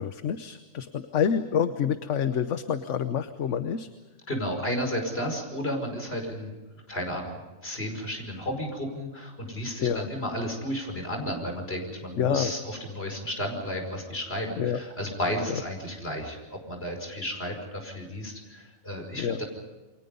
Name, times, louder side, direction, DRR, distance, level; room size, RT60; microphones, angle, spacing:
voice 1, 0.0-3.9 9.8-10.1 12.2-12.5 14.6-14.8 15.5-15.6 19.2-19.4, left 8 dB, 65° left, 10 dB, 1.2 m, -27 dB
voice 2, 4.3-6.6 6.9-19.4, equal, 45° left, 3 dB, 5.6 m, -33 dB
29.0 x 23.5 x 5.5 m, 1.2 s
omnidirectional pair, 1.4 m